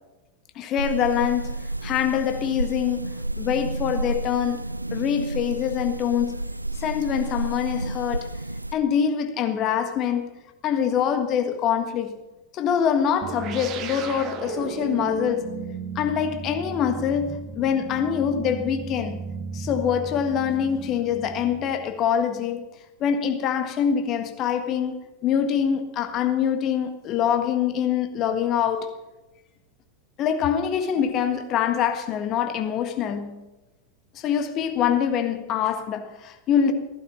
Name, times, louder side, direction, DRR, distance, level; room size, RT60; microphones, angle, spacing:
voice 1, 0.5-4.6 4.9-6.5 6.8-8.3 8.7-10.4 10.6-12.1 12.5-15.5 15.9-19.3 19.5-22.7 23.0-28.9 30.2-33.4 34.1-36.7, left 8 dB, 35° left, 1.6 m, -24 dB
sound 1, 0.8-8.7, right 2 dB, 85° right, 0.4 m, -31 dB
sound 2, 13.2-22.0, right 6 dB, 35° right, 1.3 m, -35 dB
15.5 x 11.0 x 5.6 m
figure-of-eight pair, 90°, 0 cm